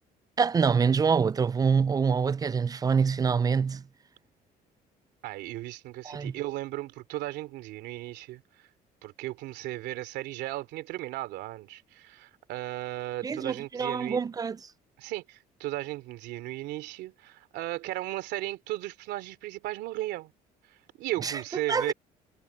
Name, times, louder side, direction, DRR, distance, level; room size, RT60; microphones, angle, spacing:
voice 1, 0.4-3.8 6.0-6.3 13.2-14.6 21.2-21.4 21.7-21.9, right 6 dB, 20° right, 0.3 m, -25 dB
voice 2, 5.2-8.7 9.0-14.2 15.0-20.3 21.0-21.9, right 16 dB, 85° right, 2.9 m, -36 dB
cardioid pair, 110°, 17 cm